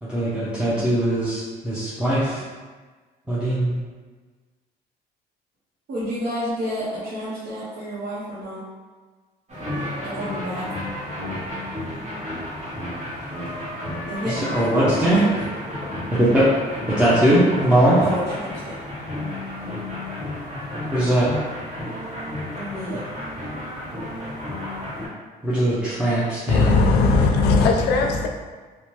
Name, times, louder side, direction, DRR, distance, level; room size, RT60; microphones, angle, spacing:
voice 1, 0.0-2.4 3.3-3.7 14.2-15.2 16.2-16.4 17.0-18.0 20.9-21.3 25.4-26.7, right 1 dB, 5° right, -10 dB, 0.6 m, -20 dB
voice 2, 5.9-8.6 10.0-10.7 14.1-14.7 15.0-15.4 17.9-18.7 22.5-23.0, equal, 65° right, -10 dB, 0.8 m, -30 dB
sound 1, 9.5-25.1, left 1 dB, 40° right, 1.2 m, -32 dB
voice 3, 26.5-28.3, left 4 dB, 80° left, 2 dB, 0.4 m, -18 dB
2.7 x 2.1 x 3.0 m, 1.4 s
cardioid pair, 110°, 17 cm